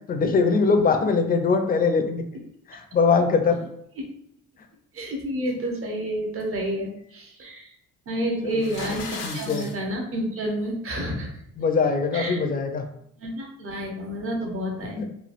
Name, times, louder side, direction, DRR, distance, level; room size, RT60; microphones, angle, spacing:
voice 1, 0.1-2.2 2.7-3.7 8.5-9.7 11.6-12.9 15.0-15.1, left 4 dB, 30° left, 6 dB, 0.4 m, -22 dB
voice 2, 4.9-7.7 8.1-11.3 12.1-12.4 13.2-15.1, equal, 45° right, 1 dB, 0.8 m, -29 dB
sound 1, 8.5-9.8, left 4 dB, 85° left, 0.6 m, -36 dB
3.1 x 2.3 x 2.5 m, 0.72 s
cardioid pair, 90°, 30 cm